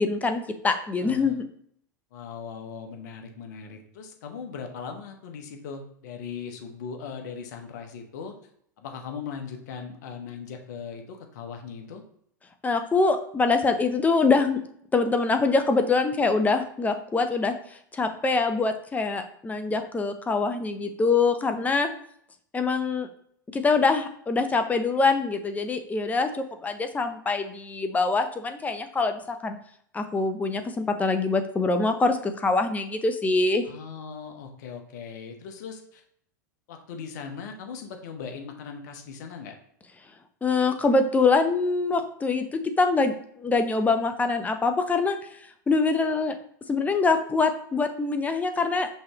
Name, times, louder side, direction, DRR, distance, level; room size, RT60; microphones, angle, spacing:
voice 1, 0.0-1.5 12.6-14.6 14.9-17.5 17.9-21.9 22.5-23.1 23.5-29.6 29.9-33.6 40.4-45.2 45.7-46.4 46.7-48.9, left 3 dB, 15° left, 7 dB, 0.6 m, -24 dB
voice 2, 1.0-1.4 2.1-8.3 8.8-12.0 33.6-36.0 36.7-39.6, left 6 dB, 60° left, 4 dB, 0.9 m, -39 dB
5.5 x 3.2 x 2.9 m, 0.66 s
figure-of-eight pair, 85°, 11 cm